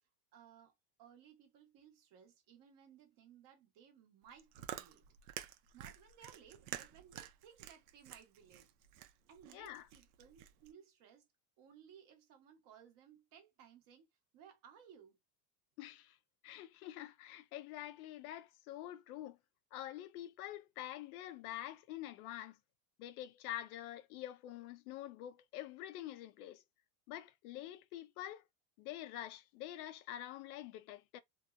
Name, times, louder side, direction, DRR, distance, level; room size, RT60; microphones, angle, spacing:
voice 1, 0.3-0.7 1.0-5.0 5.7-8.7 9.3-11.3 11.6-14.1 14.3-15.2, right 8 dB, 45° right, 0.9 m, -60 dB
Chewing mastication, 4.2-10.7, right 12 dB, 80° right, 0.6 m, -50 dB
voice 2, 9.5-9.9 15.8-16.2 16.4-19.4 19.7-22.6 23.0-26.6 27.1-28.4 28.8-31.2, left 13 dB, 75° left, 0.5 m, -47 dB
2.8 x 2.0 x 2.4 m
supercardioid pair, 130°, 45 cm